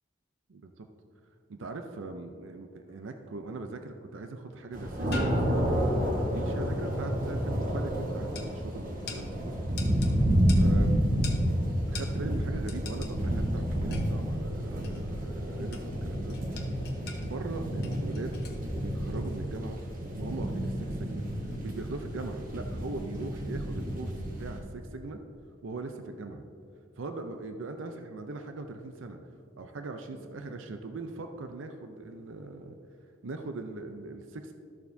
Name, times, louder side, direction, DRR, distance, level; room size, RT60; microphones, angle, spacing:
voice 1, 0.5-0.9 1.5-5.7 6.2-9.7 10.6-11.3 11.9-16.4 17.2-18.4 18.8-19.8 20.1-21.3 21.6-24.1 24.4-25.2 25.6-26.4 27.0-29.2 29.6-32.8 33.2-34.5, right 3 dB, 80° right, 6 dB, 0.6 m, -40 dB
sound 1, 2.9-3.4 4.5-4.6 5.1-6.0 8.3-8.5 9.1-9.3 9.8-10.1 10.5-10.7 11.2-11.4 11.9-12.1 12.7-13.1 13.9-14.2 14.8-15.1 15.7-16.0 16.3-17.3 17.8-18.6 19.1-19.2, left 4 dB, 50° left, 0.9 m, -44 dB
sound 2, 4.7-24.6, equal, 45° right, 1.0 m, -30 dB
13.0 x 6.9 x 2.7 m, 2.4 s
head